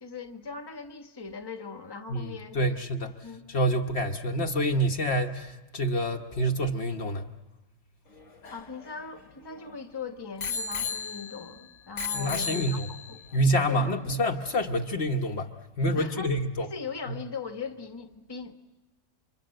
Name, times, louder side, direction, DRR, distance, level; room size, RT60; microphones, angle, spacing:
voice 1, 0.0-3.5 8.5-12.8 13.1-13.2 13.6-14.2 16.0-18.6, left 5 dB, 20° left, 1.2 m, -40 dB
voice 2, 2.1-3.1 3.5-7.2 12.1-12.9 13.3-15.5 15.8-16.7, equal, 55° left, 1.3 m, -27 dB
Bicycle bell, 8.1-9.8 10.4-11.5 12.0-13.2 13.9-14.0, left 5 dB, 80° left, 2.0 m, -35 dB
29.0 x 25.5 x 7.7 m
omnidirectional pair, 1.3 m